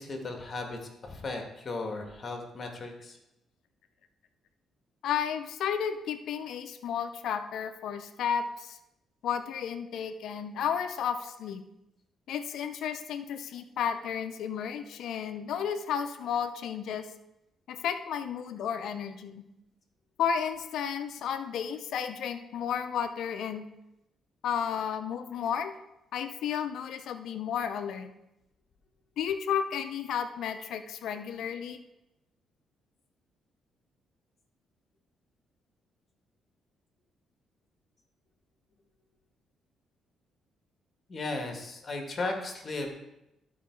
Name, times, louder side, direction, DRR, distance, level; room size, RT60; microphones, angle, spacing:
voice 1, 0.0-3.2 41.1-43.0, left 2 dB, 40° left, 3 dB, 1.8 m, -36 dB
voice 2, 5.0-8.8 9.2-11.6 12.3-17.1 17.7-19.4 20.2-23.7 24.4-25.7 26.1-28.1 29.2-31.8, left 8 dB, 75° left, 9 dB, 0.6 m, -32 dB
13.0 x 4.7 x 4.7 m, 0.89 s
cardioid pair, 90°, 0 cm